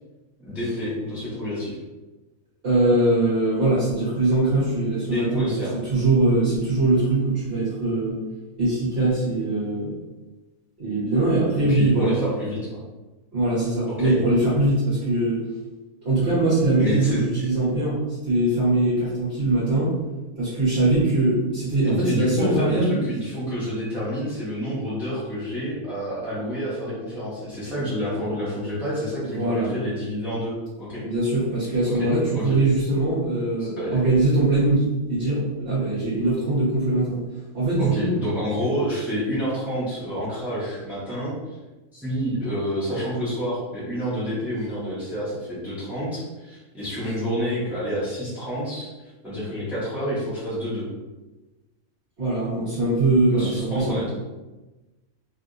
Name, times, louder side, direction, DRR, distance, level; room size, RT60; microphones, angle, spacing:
voice 1, 0.4-1.8 5.1-5.7 11.6-12.6 13.8-14.2 16.8-17.5 21.8-31.0 31.8-32.6 33.6-34.0 37.8-41.3 41.9-50.9 53.3-54.1, equal, ahead, -10 dB, 0.9 m, -28 dB
voice 2, 2.6-5.4 5.9-8.2 8.6-9.9 10.8-12.1 13.3-15.4 16.0-18.0 18.2-19.9 20.3-23.0 29.2-29.7 31.0-37.2 37.5-38.1 52.2-54.0, right 2 dB, 50° right, -11 dB, 1.3 m, -22 dB
3.3 x 2.6 x 2.6 m, 1.1 s
omnidirectional pair, 1.5 m